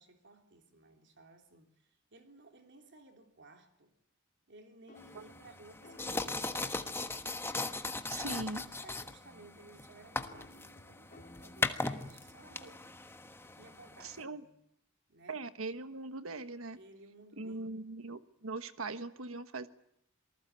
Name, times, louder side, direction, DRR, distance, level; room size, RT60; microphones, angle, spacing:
voice 1, 0.0-3.9 4.5-7.3 8.8-12.9 13.5-14.6 15.1-15.4 16.7-17.8, right 2 dB, 60° right, 4 dB, 3.2 m, -58 dB
sound 1, 4.9-8.6 10.2-13.8, left 1 dB, 40° left, 3.5 m, -58 dB
sound 2, 5.0-14.2, left 2 dB, 10° left, 1.3 m, -39 dB
voice 2, 8.1-8.6 14.0-14.4 15.3-16.8 17.4-19.7, right 3 dB, 80° right, 11 dB, 1.4 m, -40 dB
27.5 x 19.5 x 9.2 m, 0.74 s
head